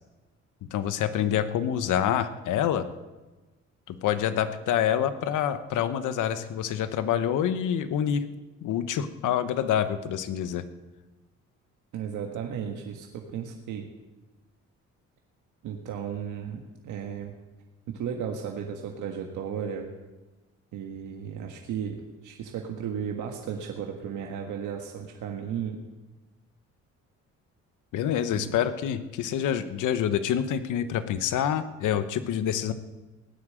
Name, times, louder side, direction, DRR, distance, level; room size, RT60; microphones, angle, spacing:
voice 1, 0.7-2.9 3.9-8.2 8.6-10.6 27.9-32.7, left 9 dB, 85° left, 11 dB, 1.1 m, -27 dB
voice 2, 11.9-13.9 15.6-17.3 17.9-19.9 20.7-25.8 28.3-28.6, right 8 dB, 80° right, 2 dB, 1.6 m, -35 dB
17.0 x 9.9 x 7.7 m, 1.2 s
cardioid pair, 90°, 30 cm